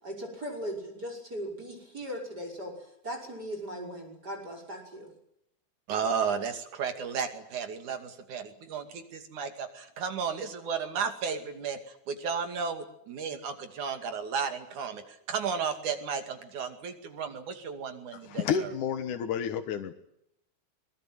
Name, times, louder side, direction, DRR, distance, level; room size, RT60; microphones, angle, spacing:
voice 1, 0.0-5.1, equal, 30° right, 1 dB, 6.3 m, -38 dB
voice 2, 5.9-18.7, right 6 dB, 75° right, 7 dB, 3.8 m, -34 dB
voice 3, 18.2-19.9, left 8 dB, 80° left, 6 dB, 2.8 m, -30 dB
22.5 x 22.0 x 9.5 m, 0.76 s
omnidirectional pair, 3.5 m